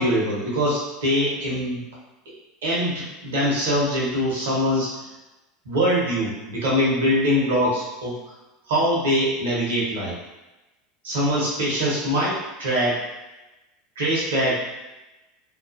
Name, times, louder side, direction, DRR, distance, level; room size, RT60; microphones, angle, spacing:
voice 1, 0.0-1.8 2.6-4.9 5.7-8.2 8.7-10.1 11.0-13.0 14.0-14.6, equal, 70° right, -6 dB, 0.8 m, -23 dB
2.4 x 2.3 x 2.4 m, 1.0 s
figure-of-eight pair, 75°, 0 cm